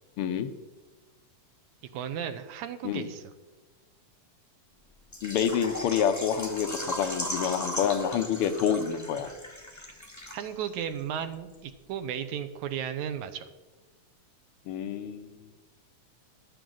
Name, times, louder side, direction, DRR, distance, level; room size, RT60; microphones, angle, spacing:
voice 1, 0.2-0.5 2.8-3.1 5.2-9.3 14.7-15.4, left 8 dB, 75° left, 9 dB, 1.3 m, -28 dB
voice 2, 1.9-3.2 10.3-13.5, right 9 dB, 80° right, 9 dB, 2.1 m, -34 dB
Water / Liquid, 5.1-10.7 11.0-11.1 11.5-11.6, left 1 dB, 25° left, 0.3 m, -37 dB
14.0 x 11.5 x 3.9 m, 1.2 s
omnidirectional pair, 3.5 m